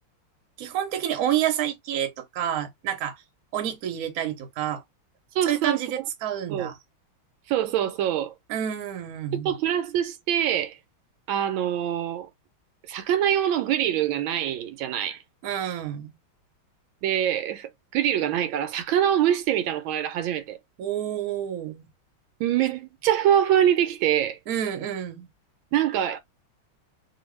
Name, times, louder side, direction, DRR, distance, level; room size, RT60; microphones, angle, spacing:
voice 1, 0.6-3.2 3.5-4.8 5.5-6.8 8.5-9.5 15.4-16.1 20.8-21.9 24.5-25.3, right 10 dB, 60° right, 1.0 m, -29 dB
voice 2, 5.3-5.8 6.5-6.7 7.5-8.3 9.3-10.8 11.3-12.3 12.9-15.2 17.0-20.6 22.4-24.4 25.7-26.2, right 10 dB, 80° right, 1.3 m, -24 dB
2.9 x 2.6 x 3.1 m
omnidirectional pair, 2.2 m